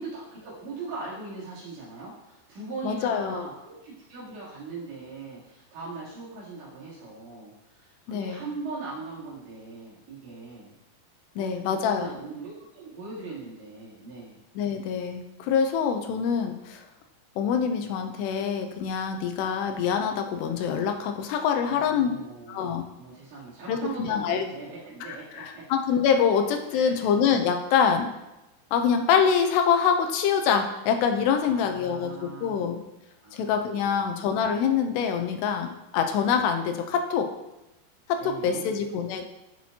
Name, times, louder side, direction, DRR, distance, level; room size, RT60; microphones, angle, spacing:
voice 1, 0.0-10.7 11.4-14.4 21.7-25.6 26.7-27.0 31.4-32.7 33.2-34.0 38.2-38.6, right 3 dB, 90° right, -8 dB, 5.4 m, -40 dB
voice 2, 2.8-3.5 8.1-8.4 11.4-12.1 14.6-16.8 17.4-22.1 22.5-22.8 23.7-24.5 25.4-28.1 28.7-32.8 33.3-35.7 35.9-37.3 38.1-39.2, left 7 dB, 80° left, 5 dB, 2.8 m, -25 dB
14.5 x 6.1 x 2.8 m, 0.96 s
omnidirectional pair, 5.0 m